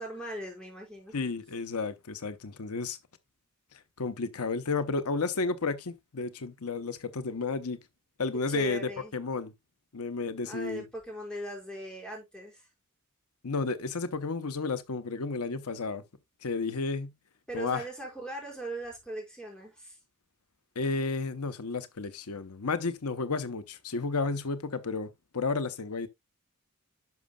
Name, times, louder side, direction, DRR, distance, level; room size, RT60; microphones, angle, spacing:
voice 1, 0.0-1.2 8.5-9.1 10.5-12.7 17.5-20.0, right 1 dB, 5° left, 5.2 m, -39 dB
voice 2, 1.1-3.0 3.7-7.8 8.2-9.5 9.9-10.8 13.4-16.0 16.4-17.1 17.5-17.8 20.7-26.1, left 4 dB, 90° left, 0.9 m, -32 dB
11.0 x 6.3 x 2.3 m
head